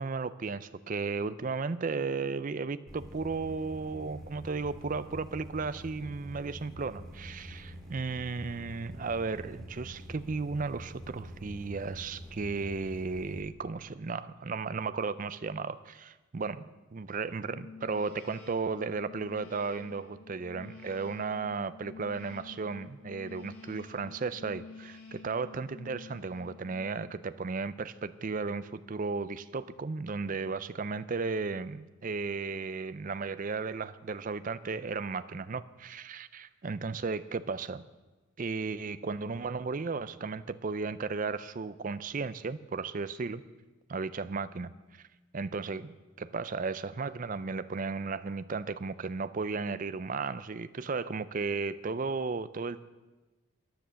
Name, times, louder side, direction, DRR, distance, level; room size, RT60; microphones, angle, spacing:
voice 1, 0.0-37.8 38.4-43.4 43.9-44.7 45.3-52.8, right 4 dB, 40° right, 14 dB, 0.4 m, -35 dB
sound 1, 2.9-13.4, equal, ahead, 2.6 m, -46 dB
sound 2, 17.3-27.2, left 5 dB, 75° left, 4.4 m, -50 dB
14.0 x 10.0 x 6.9 m, 1.2 s
head